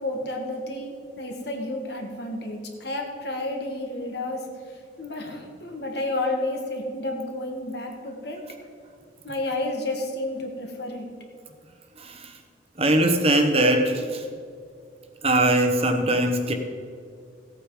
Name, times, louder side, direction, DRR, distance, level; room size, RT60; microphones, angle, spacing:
voice 1, 0.0-8.4 9.2-11.1, left 2 dB, 60° left, 2 dB, 1.9 m, -31 dB
voice 2, 12.0-12.4 12.8-14.2 15.2-16.5, right 1 dB, 30° right, 5 dB, 1.0 m, -21 dB
15.5 x 8.6 x 4.9 m, 2.2 s
head